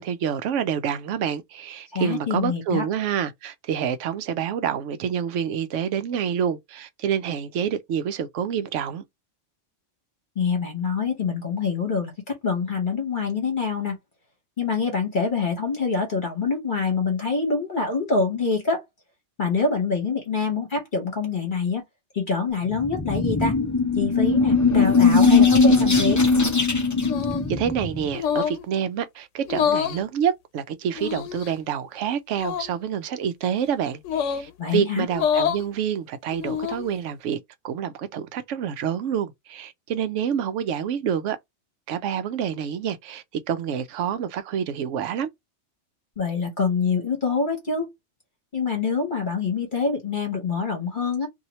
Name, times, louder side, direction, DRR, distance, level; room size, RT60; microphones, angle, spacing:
voice 1, 0.0-9.0 27.5-37.4 37.6-41.4 41.9-45.3, right 8 dB, 85° right, 0.9 m, -27 dB
voice 2, 1.9-2.9 10.3-14.0 14.6-18.8 19.4-21.8 22.1-23.5 24.0-26.2 34.6-35.1 46.2-47.9 48.5-51.3, left 5 dB, 45° left, 1.1 m, -25 dB
sound 1, 22.7-28.1, left 4 dB, 25° left, 0.4 m, -19 dB
sound 2, 27.0-27.5 28.1-28.6 29.5-30.0 31.0-31.5 32.3-32.7 34.0-34.5 35.1-35.6 36.3-36.9, left 8 dB, 85° left, 0.9 m, -26 dB
2.8 x 2.7 x 2.9 m
omnidirectional pair, 1.2 m